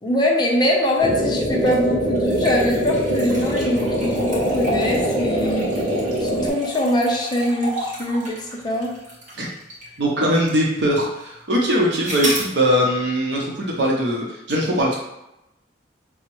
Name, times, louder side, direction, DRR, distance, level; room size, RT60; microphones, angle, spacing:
voice 1, 0.0-5.7 6.2-8.9, left 1 dB, 25° left, -1 dB, 0.6 m, -22 dB
sound 1, 1.0-6.5, right 1 dB, 25° right, 1.3 m, -23 dB
sound 2, 1.5-10.0 10.5-10.6 12.0-12.5, right 1 dB, 50° right, 1.2 m, -31 dB
voice 2, 10.0-15.0, equal, 70° right, -2 dB, 0.7 m, -21 dB
5.7 x 2.0 x 3.0 m, 0.87 s
head